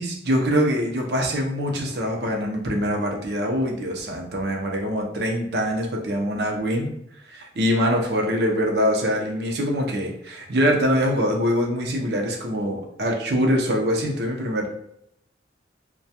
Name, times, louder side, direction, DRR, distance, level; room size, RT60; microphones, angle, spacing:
voice 1, 0.0-6.9 7.2-14.7, equal, 65° right, 1 dB, 0.5 m, -24 dB
2.2 x 2.2 x 2.7 m, 0.76 s
head